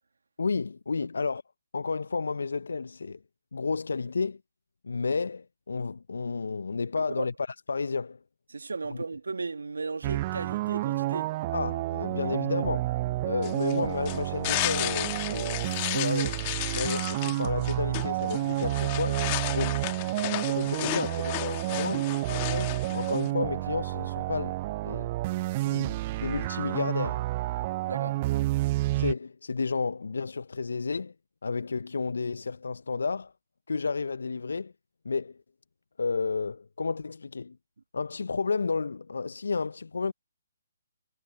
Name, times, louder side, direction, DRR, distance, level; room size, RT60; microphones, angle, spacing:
voice 1, 0.4-1.4 1.7-3.2 3.5-4.4 4.8-7.3 7.7-8.2 11.5-12.8 13.2-16.4 16.7-19.8 20.3-24.6 24.8-25.1 25.6-27.3 28.9-31.1 31.4-33.3 33.7-34.7 35.0-35.4 36.0-37.6 37.9-40.1, left 4 dB, 70° left, 0.7 m, -31 dB
voice 2, 7.0-7.3 8.5-11.3 12.2-12.7 27.9-28.2, right 4 dB, 70° right, 2.0 m, -36 dB
sound 1, 10.0-29.1, right 18 dB, 35° right, 0.5 m, -30 dB
sound 2, 13.4-23.3, left 23 dB, 30° left, 2.0 m, -34 dB
figure-of-eight pair, 135°, 0 cm